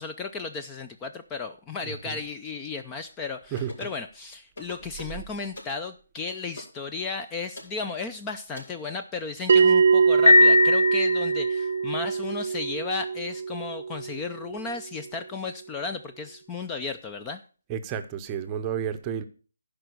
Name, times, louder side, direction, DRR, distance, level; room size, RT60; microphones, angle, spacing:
voice 1, 0.0-17.4, left 4 dB, 15° left, 7 dB, 0.5 m, -34 dB
voice 2, 1.8-2.2 3.5-3.9 5.0-5.2 17.7-19.2, right 8 dB, 20° right, 9 dB, 0.8 m, -32 dB
sound 1, 3.6-4.0 4.5-5.2 5.5-5.8 6.6-6.8 7.5-7.8 8.5-8.8 9.6-9.7, left 1 dB, 65° left, 4.8 m, -42 dB
Bell, 9.5-14.5, right 5 dB, 55° right, 0.6 m, -23 dB
Piano, 10.3-11.7, left 3 dB, 80° left, 0.6 m, -19 dB
11.5 x 5.1 x 6.5 m, 0.38 s
figure-of-eight pair, 160°, 0 cm